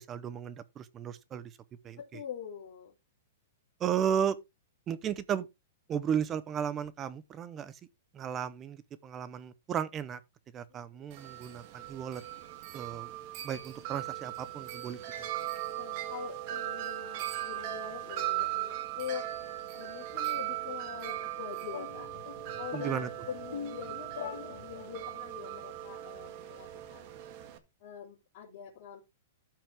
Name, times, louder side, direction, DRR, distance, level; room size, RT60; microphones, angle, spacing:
voice 1, 0.0-1.5 1.8-2.0 3.8-4.4 4.9-5.5 5.9-7.8 8.1-10.2 10.5-12.2 12.7-13.1 13.4-15.0 22.7-23.1, right 8 dB, 20° right, 0.7 m, -34 dB
voice 2, 2.0-2.9 10.7-11.1 15.7-19.3 19.7-27.1 27.8-29.0, left 9 dB, 35° left, 3.4 m, -44 dB
Wind chime, 11.1-27.6, right 14 dB, 35° right, 1.6 m, -38 dB
sound 1, 21.7-25.2, left 7 dB, 80° left, 1.8 m, -43 dB
13.5 x 5.9 x 3.5 m
hypercardioid pair, 165°, 0 cm